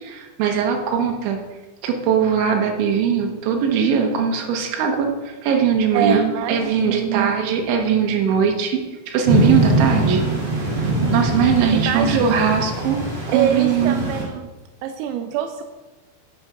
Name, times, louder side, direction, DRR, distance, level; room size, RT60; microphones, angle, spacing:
voice 1, 0.0-1.4 1.8-6.2 6.5-8.8 9.1-10.2 10.6-13.0 13.3-14.0, right 7 dB, 70° right, 2 dB, 3.5 m, -20 dB
voice 2, 5.9-7.6 11.9-12.4 13.3-14.5 14.8-15.6, right 9 dB, 85° right, 6 dB, 3.3 m, -24 dB
sound 1, 9.2-14.2, right 1 dB, 35° right, 3.2 m, -22 dB
11.5 x 6.9 x 5.2 m, 1.2 s
omnidirectional pair, 5.9 m